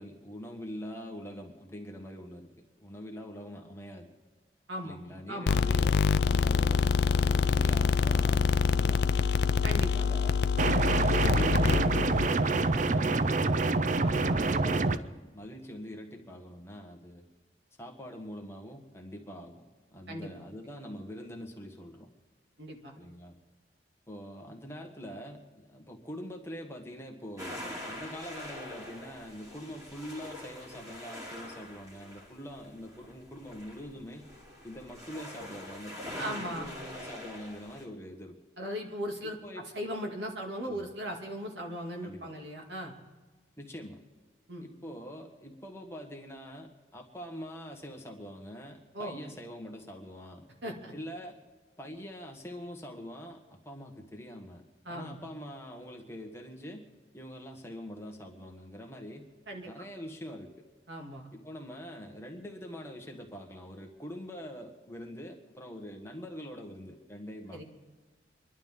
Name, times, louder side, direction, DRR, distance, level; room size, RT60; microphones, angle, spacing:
voice 1, 0.0-2.5 2.8-4.1 4.8-9.3 9.9-10.4 11.3-13.6 14.0-17.2 17.8-19.6 19.9-22.1 23.0-23.3 24.1-34.2 34.6-38.3 39.2-39.6 40.6-40.9 42.0-42.3 43.6-44.0 44.6-50.4 50.9-51.3 51.8-56.8 57.1-59.2 59.6-60.6 61.3-67.6, equal, 15° left, 2 dB, 1.6 m, -44 dB
voice 2, 5.3-5.6 9.6-10.1 14.0-14.4 20.1-20.3 22.6-22.9 36.2-36.7 38.6-39.4 39.7-42.9 44.5-44.7 48.9-49.2 50.6-50.9 54.8-55.2 59.5-59.7 60.9-61.3 67.5-67.6, equal, 75° right, 1 dB, 2.5 m, -38 dB
sound 1, 5.5-12.3, left 5 dB, 65° left, 0.4 m, -26 dB
sound 2, 10.6-15.0, right 3 dB, 45° right, 0.5 m, -26 dB
sound 3, 27.4-37.8, left 1 dB, 20° right, 3.3 m, -44 dB
25.5 x 11.5 x 3.8 m, 1.3 s
head